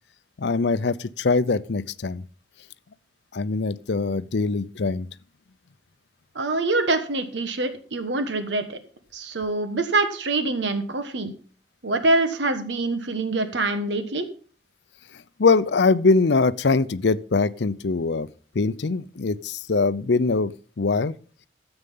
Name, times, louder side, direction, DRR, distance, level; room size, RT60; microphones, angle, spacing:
voice 1, 0.4-2.2 3.3-5.1 15.1-18.3 18.5-20.5 20.8-21.1, left 4 dB, 70° left, 0.6 m, -22 dB
voice 2, 6.3-8.8 9.1-11.3 11.8-14.3, right 2 dB, 80° right, 1.3 m, -25 dB
13.5 x 8.0 x 5.5 m
head